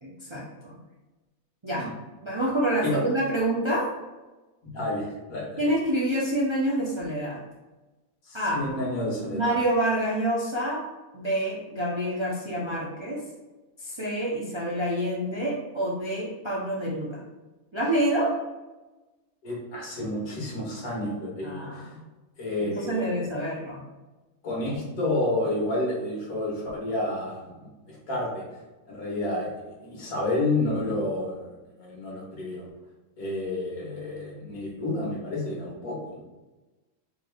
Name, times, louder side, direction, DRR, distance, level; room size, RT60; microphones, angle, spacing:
voice 1, 0.0-0.8 1.6-1.9 2.2-3.9 5.6-7.4 8.3-8.7 9.3-10.8 11.1-13.2 13.8-17.2 17.7-18.3 21.4-22.0 22.6-23.8, right 1 dB, 30° right, -5 dB, 0.5 m, -27 dB
voice 2, 4.7-5.7 8.3-9.5 19.4-21.9 22.4-23.1 24.4-28.4 28.9-32.7 33.2-36.2, left 2 dB, 90° left, -4 dB, 1.8 m, -30 dB
4.5 x 3.3 x 2.3 m, 1.1 s
omnidirectional pair, 1.5 m